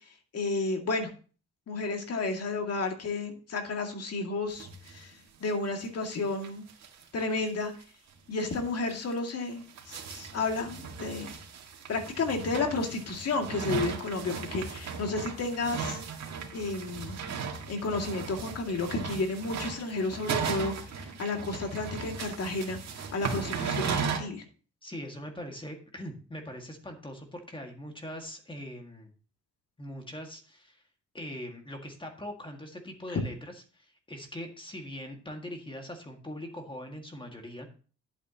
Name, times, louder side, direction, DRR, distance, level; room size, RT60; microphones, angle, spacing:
voice 1, 0.3-1.1 1.7-5.1 5.4-6.7 7.1-7.7 8.3-11.3 11.9-16.0 16.5-17.2 17.7-24.4 33.1-33.2, left 3 dB, 55° left, 4 dB, 2.3 m, -32 dB
sound 1, 4.6-5.0 5.3-5.4 5.6-5.7 6.1-6.2 6.4-7.0 7.4-7.5 7.8-7.9 8.4-8.5 9.1-24.2, right 5 dB, 60° right, 2.0 m, -36 dB
voice 2, 24.8-29.1 29.8-30.8 31.1-37.7, equal, 15° left, 3 dB, 1.9 m, -41 dB
11.0 x 8.3 x 2.9 m, 0.38 s
cardioid pair, 90°, 30 cm